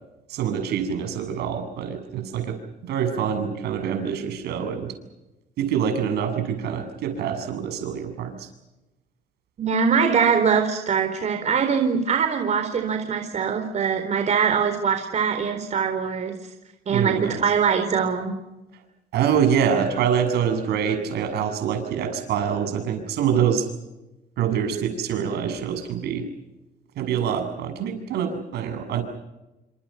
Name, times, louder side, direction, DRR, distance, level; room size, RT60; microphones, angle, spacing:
voice 1, 0.3-2.6 2.8-4.9 5.6-8.3 16.9-17.4 19.1-23.7 24.4-26.3 27.0-29.0, right 8 dB, 75° right, 6 dB, 7.6 m, -25 dB
voice 2, 9.6-16.4 16.9-18.3, right 6 dB, 45° right, 5 dB, 4.2 m, -22 dB
29.0 x 27.0 x 5.8 m, 0.96 s
cardioid pair, 110°, 17 cm